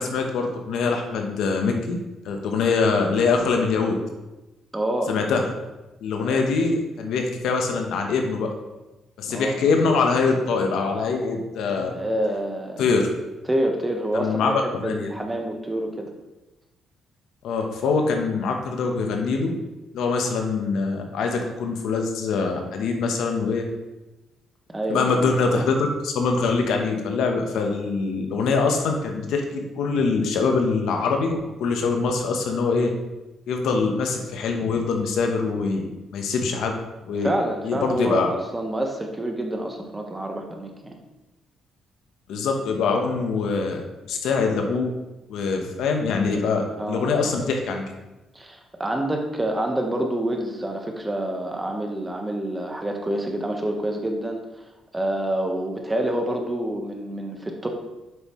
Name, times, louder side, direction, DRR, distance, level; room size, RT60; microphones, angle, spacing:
voice 1, 0.0-2.0 2.2-3.9 5.1-5.4 6.0-8.5 9.2-12.0 12.8-13.1 14.1-15.1 17.4-19.5 19.9-23.6 24.9-32.9 33.5-35.8 36.1-36.7 37.1-37.3 37.6-38.3 42.3-43.8 44.1-44.9 45.3-47.8, left 4 dB, 80° left, 3 dB, 1.0 m, -23 dB
voice 2, 4.7-5.1 6.2-6.4 9.3-9.6 11.9-12.8 13.5-16.1 24.7-25.5 37.2-41.0 46.8-47.3 48.3-54.4 54.9-57.7, right 1 dB, 15° right, 3 dB, 1.2 m, -27 dB
7.9 x 5.4 x 3.2 m, 1.0 s
cardioid pair, 90°, 0 cm